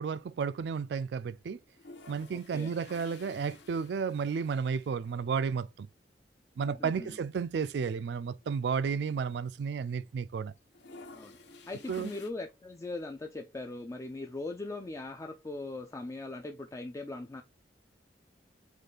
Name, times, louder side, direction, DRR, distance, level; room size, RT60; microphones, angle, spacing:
voice 1, 0.0-1.6 2.1-5.9 6.6-10.5 11.9-12.1, right 6 dB, 70° right, 0.3 m, -32 dB
sound 1, 1.6-5.2 5.5-5.6 5.8-5.9 6.8-7.0 7.5-7.6 7.7-9.6 9.9-10.3 10.6-12.3, left 3 dB, 75° left, 0.8 m, -53 dB
voice 2, 2.3-2.8 6.6-7.2 11.1-11.4 11.7-17.4, left 2 dB, 15° left, 0.3 m, -40 dB
5.3 x 2.4 x 3.8 m
head